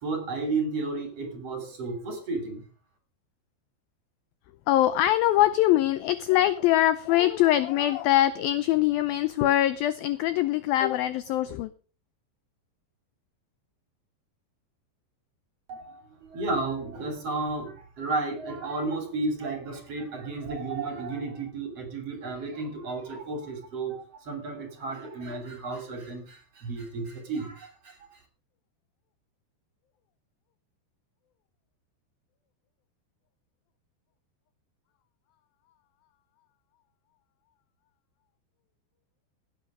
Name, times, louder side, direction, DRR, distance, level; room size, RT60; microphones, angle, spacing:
voice 1, 0.0-2.6 15.7-28.0, right 3 dB, 40° right, 6 dB, 3.2 m, -33 dB
voice 2, 4.7-11.7, left 13 dB, 80° left, 14 dB, 2.1 m, -23 dB
16.5 x 8.8 x 4.9 m, 0.38 s
omnidirectional pair, 5.0 m